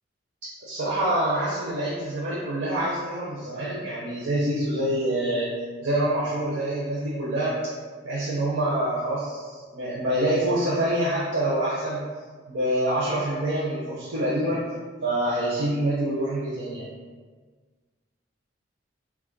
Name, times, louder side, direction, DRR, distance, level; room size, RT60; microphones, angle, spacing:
voice 1, 0.6-5.5 5.8-7.7 8.0-12.1 12.5-14.6 15.0-16.9, right 1 dB, 85° right, -8 dB, 0.7 m, -26 dB
3.0 x 2.4 x 3.7 m, 1.5 s
head